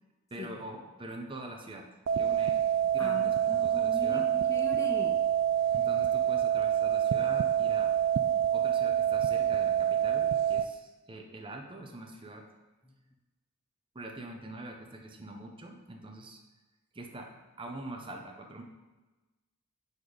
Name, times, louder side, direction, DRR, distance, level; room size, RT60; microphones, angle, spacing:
voice 1, 0.3-1.9 2.1-4.3 5.7-7.9 8.5-12.5 13.9-16.4 16.9-18.6, right 1 dB, 25° right, 3 dB, 0.7 m, -44 dB
sound 1, 2.1-10.7, right 10 dB, 60° right, 0.3 m, -27 dB
voice 2, 3.0-5.3, left 2 dB, 15° left, 2 dB, 0.5 m, -40 dB
8.9 x 4.0 x 4.9 m, 1.2 s
head